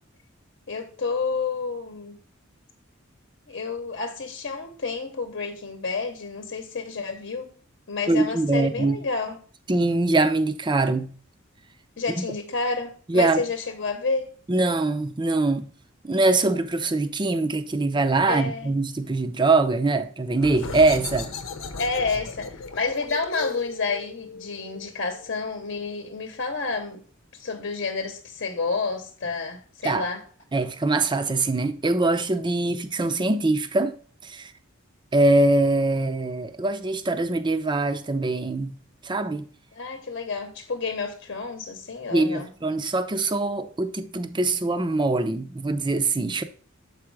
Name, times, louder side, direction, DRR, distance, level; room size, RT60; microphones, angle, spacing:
voice 1, 0.7-2.2 3.5-7.5 7.9-9.4 12.0-14.3 18.2-18.8 21.8-27.0 27.4-30.2 32.6-32.7 39.7-42.5, left 4 dB, 60° left, 0.9 m, -30 dB
voice 2, 8.1-9.0 9.7-11.1 12.1-12.2 13.1-13.4 14.5-15.7 16.0-21.3 29.8-30.1 30.5-34.0 34.2-34.5 35.1-38.8 39.0-39.5 42.1-46.4, right 2 dB, 25° right, 0.6 m, -23 dB
sound 1, 20.4-25.8, left 4 dB, 85° left, 0.8 m, -36 dB
7.2 x 4.8 x 4.6 m
head